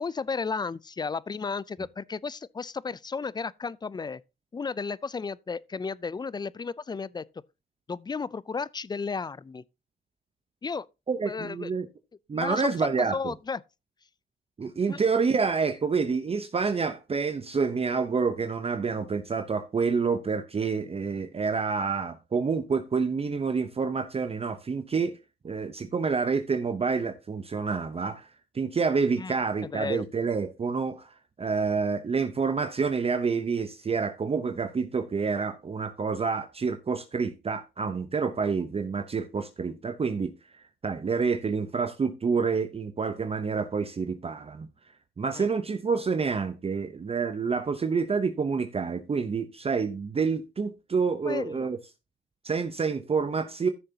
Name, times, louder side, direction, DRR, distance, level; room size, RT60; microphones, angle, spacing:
voice 1, 0.0-4.2 4.5-7.2 7.9-9.6 10.6-10.9 11.2-11.7 12.3-13.6 14.9-15.0 29.2-29.3 29.7-30.0 45.3-45.5 51.2-51.7, left 5 dB, 20° left, 0.4 m, -33 dB
voice 2, 11.1-11.9 12.3-13.2 14.6-25.2 25.4-28.3 28.5-40.3 40.8-44.7 45.2-51.8 52.4-53.7, right 5 dB, 30° right, 0.8 m, -28 dB
14.0 x 6.7 x 2.8 m
cardioid pair, 90°, 20 cm